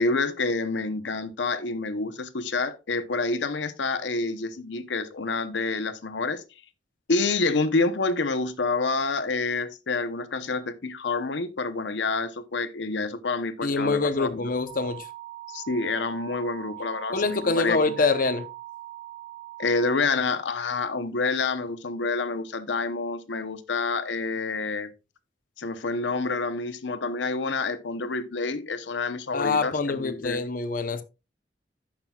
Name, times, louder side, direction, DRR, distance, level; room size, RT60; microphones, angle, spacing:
voice 1, 0.0-6.4 7.1-14.5 15.5-18.1 19.6-24.9 25.6-30.4, left 3 dB, 85° left, 0.8 m, -28 dB
voice 2, 13.6-15.1 17.1-18.5 29.3-31.0, left 3 dB, 50° left, 0.8 m, -25 dB
sound 1, 14.7-20.0, right 15 dB, 10° left, 2.9 m, -42 dB
15.0 x 5.8 x 2.3 m
head